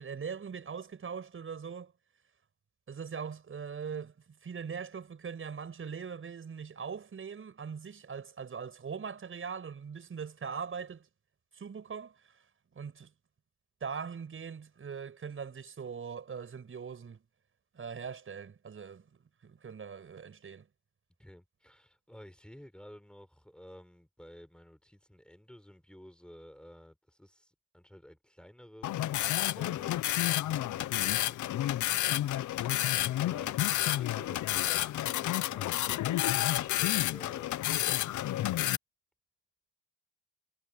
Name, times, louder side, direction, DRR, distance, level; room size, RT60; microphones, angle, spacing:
voice 1, 0.0-1.9 2.9-4.1 4.4-11.1 11.5-12.4 12.7-13.1 13.8-17.2 17.7-20.7, right 6 dB, 45° right, 6.3 m, -41 dB
voice 2, 21.2-32.3 33.2-38.2, equal, 5° left, 4.9 m, -54 dB
sound 1, 28.8-38.8, left 14 dB, 75° left, 0.9 m, -30 dB
cardioid pair, 90°, 30 cm